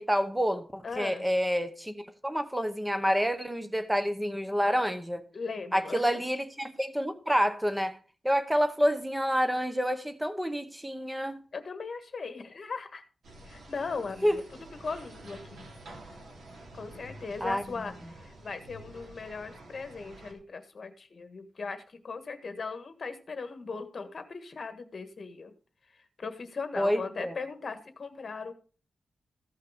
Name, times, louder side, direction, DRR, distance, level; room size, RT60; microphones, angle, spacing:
voice 1, 0.0-5.2 5.7-8.0 8.2-11.4 14.2-14.4 17.4-17.9 26.8-27.3, equal, 5° right, 1.0 m, -28 dB
voice 2, 0.8-1.3 5.3-6.2 11.5-13.0 13.5-14.4 14.8-15.6 16.7-17.9 18.2-25.5 26.2-28.5, left 4 dB, 50° left, 1.5 m, -38 dB
sound 1, 13.2-20.3, right 1 dB, 75° right, 3.1 m, -49 dB
14.5 x 5.7 x 5.0 m
wide cardioid pair, 115°, 0 cm